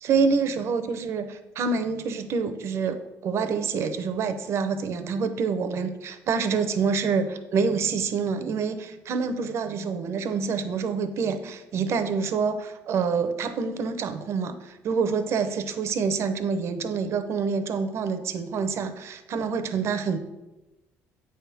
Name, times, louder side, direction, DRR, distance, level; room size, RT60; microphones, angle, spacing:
voice 1, 0.0-20.2, right 5 dB, 55° right, 10 dB, 0.7 m, -27 dB
8.1 x 3.5 x 6.1 m, 1.1 s
cardioid pair, 110°, 5 cm